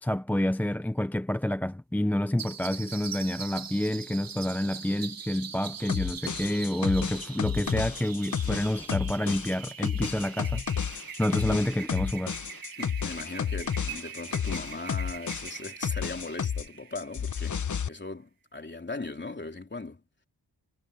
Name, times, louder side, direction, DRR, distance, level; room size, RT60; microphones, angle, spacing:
voice 1, 0.0-10.6 11.2-12.4, left 1 dB, 5° left, 0.5 m, -28 dB
sound 1, 2.4-17.6, right 7 dB, 65° right, 1.3 m, -42 dB
sound 2, 5.9-16.7 17.0-17.9, left 7 dB, 50° left, 1.0 m, -31 dB
voice 2, 12.8-20.0, left 3 dB, 30° left, 3.5 m, -39 dB
wide cardioid pair, 80°, 37 cm